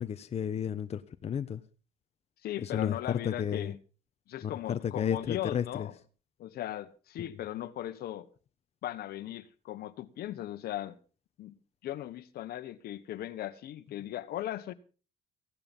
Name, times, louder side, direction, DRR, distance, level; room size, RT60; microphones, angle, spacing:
voice 1, 0.0-1.6 2.6-3.7 4.4-5.9 7.2-7.4, left 8 dB, 40° left, 0.9 m, -33 dB
voice 2, 2.4-3.8 4.3-5.9 6.4-8.3 8.8-11.0 11.4-11.6 11.8-14.7, left 13 dB, 65° left, 1.3 m, -38 dB
16.0 x 12.0 x 5.4 m
cardioid pair, 110°, 17 cm